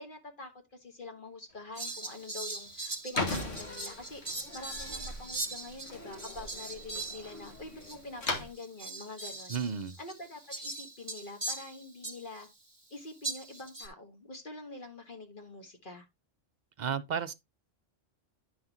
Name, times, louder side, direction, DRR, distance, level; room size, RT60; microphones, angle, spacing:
voice 1, 0.0-4.2 4.5-9.5 10.0-12.5 12.9-16.1, left 2 dB, 45° left, 1.7 m, -46 dB
sound 1, 1.5-10.7, left 2 dB, 65° left, 1.9 m, -42 dB
Fowl, 1.7-7.6 7.8-8.0 8.5-12.5 13.2-13.9, right 2 dB, 20° right, 1.6 m, -40 dB
Slam, 3.1-8.5, left 1 dB, 85° left, 2.1 m, -44 dB
voice 2, 9.5-10.0 16.8-17.3, right 7 dB, 50° right, 0.6 m, -33 dB
10.5 x 5.9 x 2.9 m
omnidirectional pair, 1.2 m